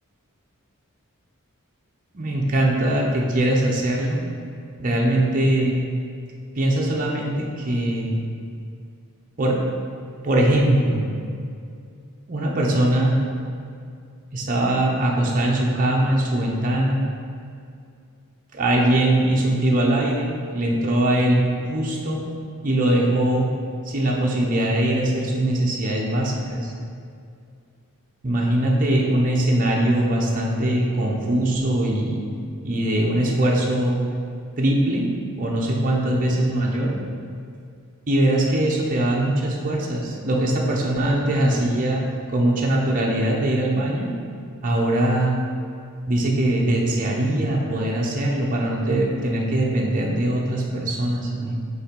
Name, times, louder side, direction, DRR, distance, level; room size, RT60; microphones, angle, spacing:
voice 1, 2.1-4.2 4.8-5.8 6.6-8.2 9.4-9.6 10.2-11.1 12.3-13.2 14.3-17.0 18.5-22.2 22.6-23.5 23.9-26.7 28.2-32.2 32.6-34.0 34.6-35.1 35.4-37.0 38.1-42.0 42.3-44.1 44.6-45.4 46.1-51.6, right 1 dB, 35° right, -3 dB, 0.7 m, -21 dB
5.5 x 4.0 x 5.2 m, 2.3 s
head